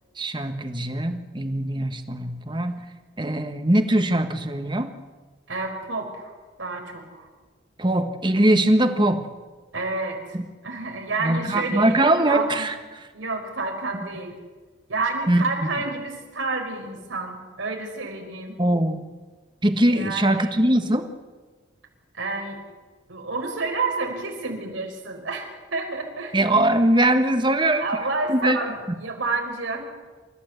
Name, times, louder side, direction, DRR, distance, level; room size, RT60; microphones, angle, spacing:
voice 1, 0.2-2.8 3.2-4.9 7.8-9.2 10.3-10.4 11.2-12.7 15.3-15.4 18.6-19.1 19.6-21.1 26.3-27.9 28.3-28.6, right 1 dB, 25° right, 7 dB, 1.4 m, -21 dB
voice 2, 5.5-6.3 6.6-7.3 9.7-10.4 10.6-12.7 13.1-14.3 14.9-18.6 19.9-20.6 22.1-22.6 23.1-26.3 27.8-29.9, right 3 dB, 90° right, 3 dB, 5.0 m, -29 dB
28.5 x 14.5 x 8.1 m, 1.3 s
head